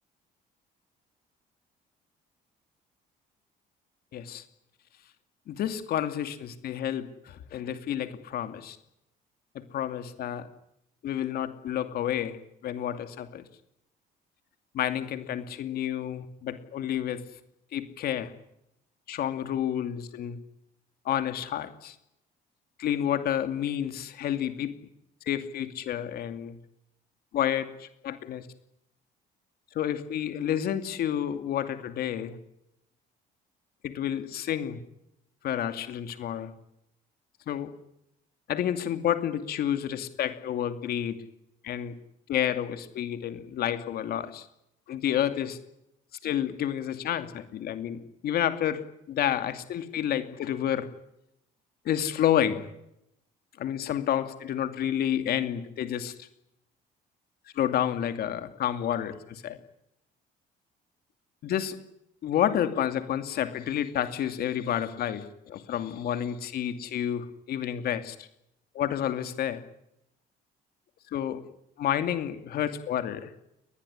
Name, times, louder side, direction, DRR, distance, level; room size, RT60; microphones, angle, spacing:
voice 1, 4.1-4.4 5.5-8.8 9.5-10.5 11.0-12.4 12.6-13.5 14.7-17.2 17.7-18.3 19.1-20.4 21.0-22.0 22.8-24.7 25.3-26.6 27.3-28.5 29.7-32.4 33.8-34.8 35.4-36.5 37.5-37.7 38.5-41.2 41.6-41.9 42.3-44.5 44.9-45.6 46.2-50.9 51.8-52.7 53.6-56.3 57.5-59.6 61.4-61.7 62.2-68.3 68.7-69.6 71.1-71.4 71.8-73.4, left 10 dB, 65° left, 9 dB, 2.5 m, -30 dB
23.0 x 20.0 x 9.9 m, 0.80 s
cardioid pair, 110°, 17 cm